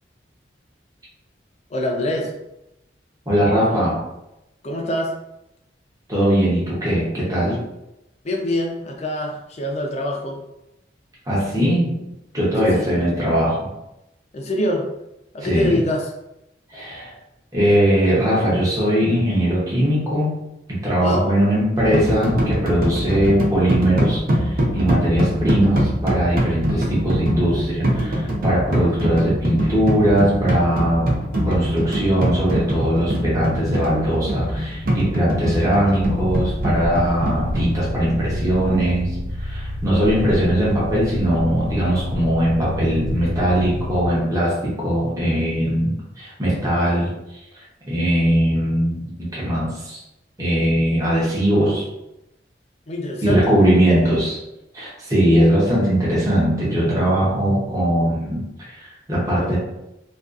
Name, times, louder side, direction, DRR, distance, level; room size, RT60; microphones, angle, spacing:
voice 1, 1.7-2.3 4.6-5.1 8.2-10.4 12.6-12.9 14.3-14.9 15.3-16.1 21.0-21.3 52.9-53.6, left 1 dB, 35° left, 1 dB, 0.4 m, -24 dB
voice 2, 3.3-4.0 6.1-7.6 11.3-11.9 12.3-13.7 15.4-15.8 16.7-17.1 17.5-20.3 20.7-31.1 31.4-47.1 47.9-50.0 50.4-51.9 53.2-54.4 54.7-59.6, equal, 20° right, -7 dB, 0.7 m, -20 dB
sound 1, 21.8-37.6, equal, 50° right, 0.5 m, -23 dB
sound 2, 36.0-44.1, left 1 dB, 85° left, 0.8 m, -28 dB
2.4 x 2.3 x 2.4 m, 0.90 s
head